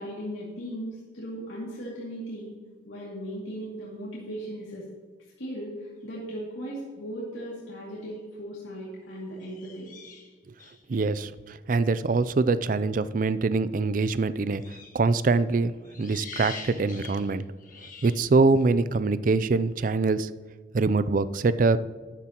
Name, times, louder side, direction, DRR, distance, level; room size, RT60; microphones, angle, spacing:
voice 1, 0.0-2.5 2.8-4.8 5.4-9.9, equal, 85° left, -6 dB, 2.4 m, -37 dB
sound 1, 8.0-8.2 9.4-10.8 14.6-15.1 15.8-18.3, left 5 dB, 45° left, 1.6 m, -44 dB
voice 2, 10.9-14.6 14.9-17.5 18.0-20.3 20.7-21.8, right 3 dB, 45° right, 15 dB, 0.4 m, -24 dB
13.0 x 10.0 x 2.9 m, 1.5 s
head